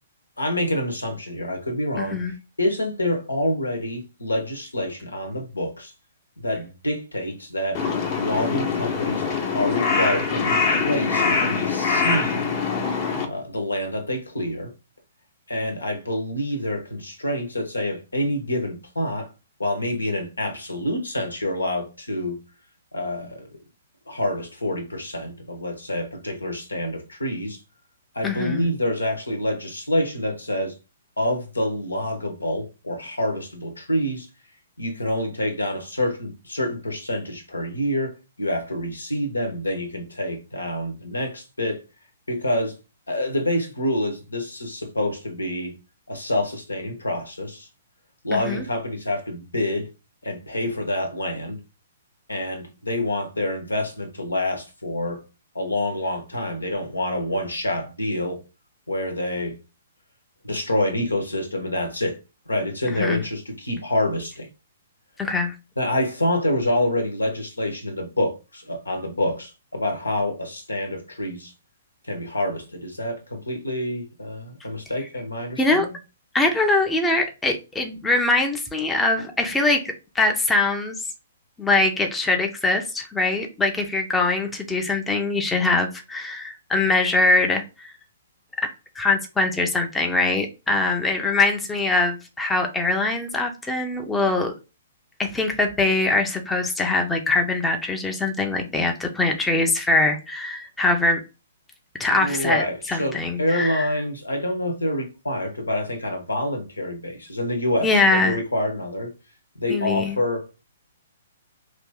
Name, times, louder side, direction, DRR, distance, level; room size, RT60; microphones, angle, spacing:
voice 1, 0.4-2.2 2.6-5.9 6.4-7.8 8.2-9.3 9.5-12.5 13.3-14.7 15.5-19.3 19.6-22.4 22.9-23.5 24.1-27.6 28.1-30.7 31.2-34.3 34.8-41.8 42.3-42.8 43.1-45.7 46.1-47.7 48.2-49.9 50.2-51.6 52.3-55.2 55.5-58.4 58.9-59.6 60.4-62.2 62.5-64.5 65.8-71.5 72.0-75.9 102.2-109.1 109.5-110.6, left 1 dB, 80° left, 1.0 m, -27 dB
voice 2, 2.0-2.3 28.2-28.7 48.3-48.6 63.0-63.2 65.2-65.5 75.6-75.9 76.3-80.9 81.6-87.9 88.6-88.7 89.0-94.5 95.2-101.2 102.0-103.9 107.8-108.4 109.7-110.2, left 2 dB, 10° left, 0.6 m, -22 dB
Crow, 7.7-13.3, left 5 dB, 35° left, 0.9 m, -23 dB
2.9 x 2.7 x 3.6 m
figure-of-eight pair, 120°, 0 cm